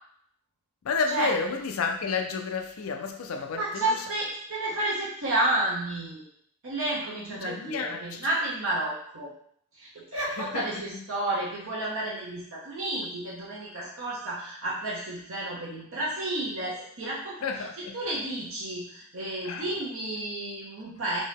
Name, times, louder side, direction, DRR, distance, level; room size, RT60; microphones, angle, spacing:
voice 1, 0.8-4.0 7.3-8.2 10.2-11.0 17.4-18.0 19.4-19.6, left 4 dB, 75° left, 4 dB, 0.5 m, -31 dB
voice 2, 3.5-6.2 6.6-9.3 9.7-17.4 17.9-21.2, right 1 dB, 65° right, -6 dB, 1.0 m, -31 dB
4.3 x 2.8 x 3.5 m, 0.65 s
head